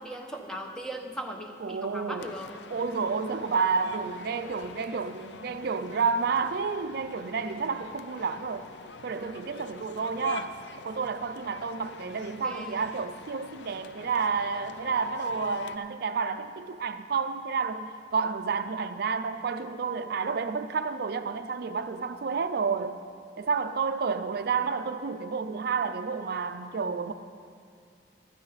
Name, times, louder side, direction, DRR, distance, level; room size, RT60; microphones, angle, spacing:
voice 1, 0.0-2.5 12.4-12.9, right 1 dB, 5° left, 2 dB, 0.9 m, -38 dB
voice 2, 1.6-2.3 2.7-8.6 9.0-10.5 10.8-23.0 23.4-27.1, right 5 dB, 60° right, 9 dB, 0.4 m, -30 dB
sound 1, 2.2-15.8, left 4 dB, 75° left, 0.5 m, -45 dB
14.5 x 12.0 x 4.0 m, 2.3 s
head